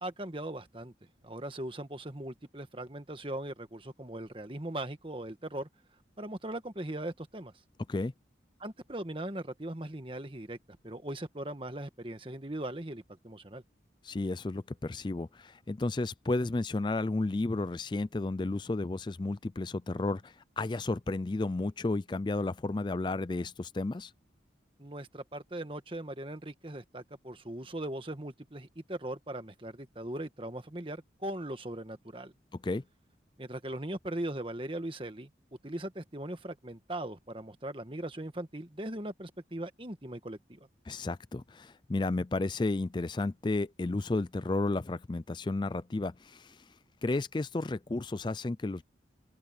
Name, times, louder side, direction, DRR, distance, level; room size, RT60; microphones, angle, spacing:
voice 1, 0.0-0.9 1.2-5.7 6.2-7.5 8.6-10.6 10.8-13.6 24.8-32.3 33.4-35.3 35.6-40.7, right 1 dB, 30° right, 1.6 m, -39 dB
voice 2, 14.0-24.1 32.6-32.8 40.9-46.7 47.0-48.8, left 2 dB, 25° left, 0.4 m, -32 dB
open air
head